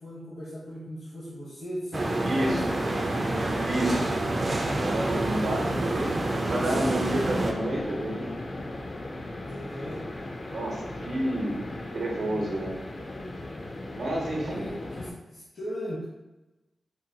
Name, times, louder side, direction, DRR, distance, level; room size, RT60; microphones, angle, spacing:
voice 1, 0.0-3.1 5.0-5.8 9.4-10.1 12.3-13.4 14.1-16.0, equal, 65° left, -8 dB, 0.9 m, -39 dB
sound 1, 1.9-7.5, right 2 dB, 35° right, 0.3 m, -28 dB
voice 2, 2.2-2.7 3.6-4.2 4.6-8.4 10.5-12.8 13.9-14.7, right 1 dB, 80° right, -2 dB, 0.8 m, -30 dB
sound 2, 2.4-15.1, left 2 dB, 40° left, 0.3 m, -38 dB
3.8 x 2.2 x 2.7 m, 1.0 s
wide cardioid pair, 115°, 0 cm